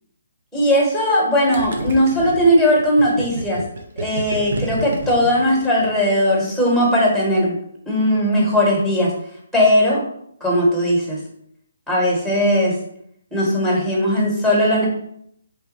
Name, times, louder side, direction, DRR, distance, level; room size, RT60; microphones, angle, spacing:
voice 1, 0.5-3.6 4.0-7.6 7.9-9.1 9.5-10.0 10.4-11.2 11.9-12.7 13.3-14.9, equal, 5° right, -5 dB, 1.1 m, -18 dB
Gurgling, 1.5-6.2, right 2 dB, 55° right, 0.7 m, -30 dB
3.2 x 2.2 x 4.1 m, 0.70 s
figure-of-eight pair, 140°, 0 cm